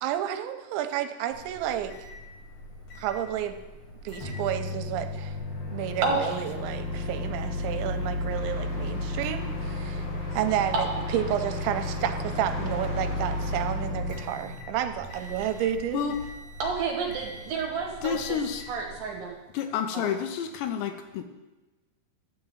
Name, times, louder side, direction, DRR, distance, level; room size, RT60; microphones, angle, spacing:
voice 1, 0.0-1.9 3.0-3.6 4.0-5.4 5.7-10.1 10.3-10.9 11.1-16.1, right 11 dB, 90° right, 8 dB, 3.0 m, -31 dB
Microwave oven, 1.3-19.3, left 1 dB, 60° left, 1.4 m, -34 dB
voice 2, 6.0-6.4 10.7-11.2 16.6-18.4 18.7-19.4 19.9-20.1, right 4 dB, 70° right, -1 dB, 2.4 m, -30 dB
sound 1, 8.3-13.7, left 1 dB, 30° left, 2.0 m, -41 dB
voice 3, 18.0-18.7 19.5-21.2, left 8 dB, 80° left, 7 dB, 2.7 m, -29 dB
12.5 x 4.8 x 7.7 m, 1.1 s
omnidirectional pair, 5.3 m